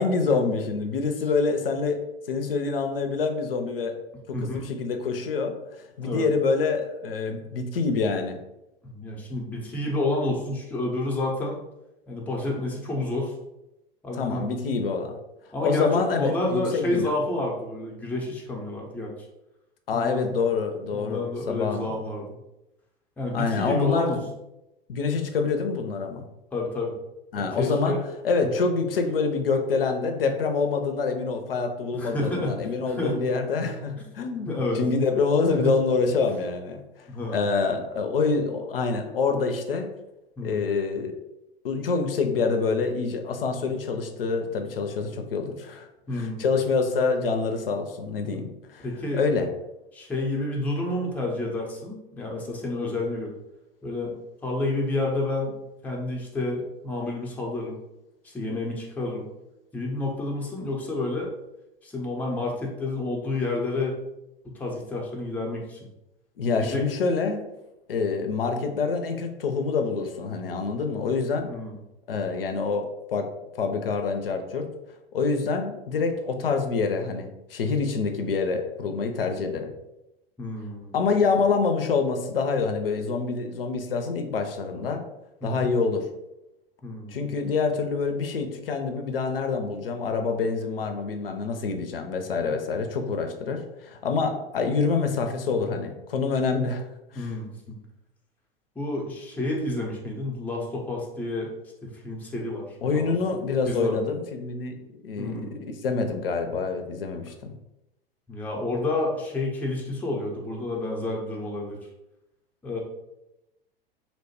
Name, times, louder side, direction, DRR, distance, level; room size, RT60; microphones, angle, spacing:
voice 1, 0.0-2.0 2.3-4.0 4.3-5.5 6.0-8.4 14.2-15.2 15.6-17.1 19.9-21.9 23.3-24.2 24.9-26.3 27.3-28.0 28.2-39.9 40.4-41.1 41.6-45.9 46.1-48.8 49.1-49.5 66.4-67.4 67.9-71.5 72.1-73.3 73.6-74.7 75.1-79.7 80.9-85.0 85.4-86.1 87.1-96.8 97.1-97.3 102.8-104.8 105.0-105.5 105.8-107.3, left 4 dB, 75° left, 5 dB, 0.4 m, -26 dB
voice 2, 4.3-4.8 6.0-6.2 8.8-11.6 12.1-13.3 14.0-14.6 15.5-19.1 19.9-20.4 20.9-22.4 23.2-24.2 26.5-27.0 27.3-28.0 31.9-33.2 34.5-34.8 35.5-35.8 37.1-37.5 40.4-40.6 43.6-43.8 46.1-46.4 48.8-49.2 49.9-53.3 53.8-54.1 54.4-55.5 55.8-57.8 58.2-59.3 59.7-61.3 61.8-63.9 64.5-65.8 66.5-66.8 71.5-71.8 80.4-81.0 85.4-85.7 86.8-87.3 97.1-97.8 98.8-101.5 101.8-102.6 102.9-103.1 103.6-103.9 105.2-105.6 108.3-111.8 112.6-112.8, left 2 dB, 5° left, -2 dB, 0.5 m, -29 dB
2.9 x 2.1 x 2.8 m, 0.91 s
figure-of-eight pair, 90°, 29 cm